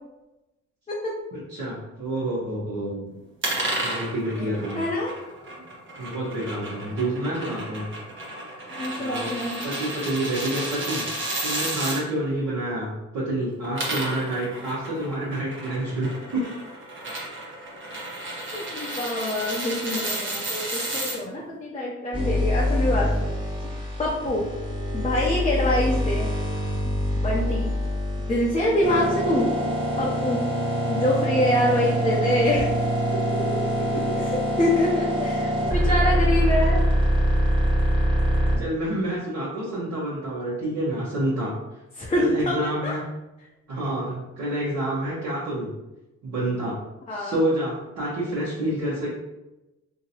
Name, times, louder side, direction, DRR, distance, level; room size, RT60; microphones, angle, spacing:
voice 1, 1.3-3.1 3.8-4.8 6.0-7.9 9.0-9.3 9.6-11.0 11.4-16.5 33.0-34.0 38.6-41.5 42.2-43.0 43.7-45.7 46.2-46.8 47.1-49.1, right 1 dB, 65° right, -10 dB, 1.2 m, -28 dB
sound 1, 3.4-12.0 13.5-21.2, right 1 dB, 40° right, 1.0 m, -32 dB
voice 2, 4.7-5.1 8.8-9.6 18.5-23.3 23.6-23.7 24.0-24.5 24.9-26.3 27.2-27.7 28.3-29.5 30.0-30.4 30.9-32.7 34.1-36.8 42.0-43.0 47.1-47.4, left 1 dB, 20° left, -4 dB, 0.6 m, -25 dB
sound 2, 22.1-38.6, equal, 15° right, 1.2 m, -24 dB
2.9 x 2.8 x 2.8 m, 0.99 s
cardioid pair, 90°, 30 cm